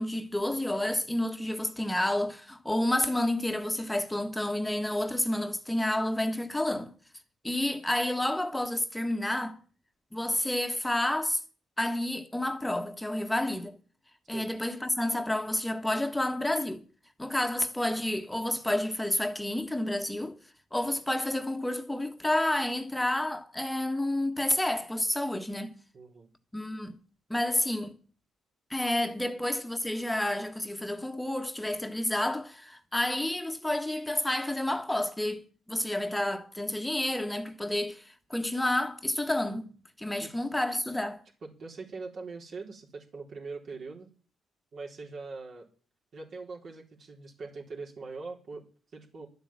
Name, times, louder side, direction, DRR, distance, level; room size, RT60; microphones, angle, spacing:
voice 1, 0.0-6.9 7.4-9.6 10.1-11.4 11.8-13.8 14.3-16.8 17.2-20.4 20.7-25.8 26.5-26.9 27.3-27.9 28.7-39.7 40.0-41.2, left 1 dB, 10° left, 1.5 m, -30 dB
voice 2, 25.9-26.3 40.2-40.4 41.4-44.1 44.7-45.7 46.1-48.6 48.9-49.3, right 4 dB, 55° right, 3.9 m, -42 dB
12.0 x 7.9 x 8.9 m
cardioid pair, 90°, 0 cm